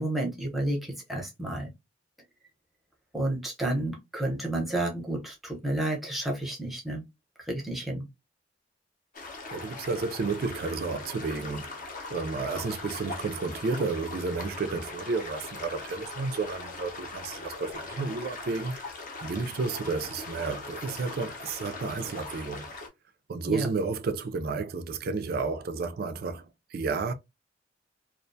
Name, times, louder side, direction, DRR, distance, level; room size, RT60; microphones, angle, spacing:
voice 1, 0.0-1.7 3.1-7.0 7.4-8.1 23.5-23.7, right 1 dB, ahead, 0.7 m, -31 dB
sound 1, 9.1-22.9, left 3 dB, 45° left, 0.6 m, -40 dB
voice 2, 9.5-11.7 12.1-22.7 23.3-26.5 26.7-27.1, right 4 dB, 55° right, 0.3 m, -32 dB
2.4 x 2.2 x 2.5 m
head